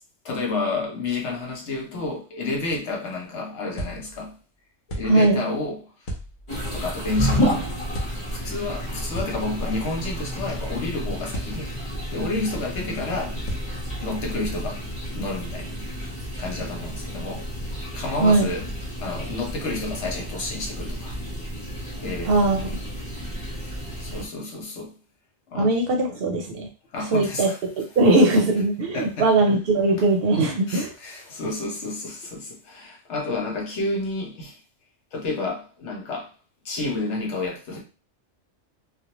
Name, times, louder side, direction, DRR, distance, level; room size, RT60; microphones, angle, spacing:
voice 1, 0.2-4.4 4.9-5.8 6.7-7.7 8.3-11.7 12.1-13.4 14.0-15.7 16.4-18.7 19.0-21.2 22.0-22.7 23.4-23.7 24.0-24.9 25.5-25.7 26.9-27.6 28.9-29.3 30.7-34.6 35.1-36.3 36.6-37.8, left 2 dB, 70° left, 1.0 m, -30 dB
sound 1, 3.8-4.3 4.9-5.4 6.1-6.6 7.9-8.5 9.2-10.0 11.3-11.9 13.5-14.1, right 1 dB, 50° left, 0.8 m, -35 dB
voice 2, 5.1-5.4 18.2-18.5 22.2-22.6 25.6-26.7 27.1-30.9, right 2 dB, 60° right, 0.7 m, -20 dB
sound 2, 6.5-24.3, equal, 30° left, 1.0 m, -31 dB
2.4 x 2.1 x 2.8 m
omnidirectional pair, 1.2 m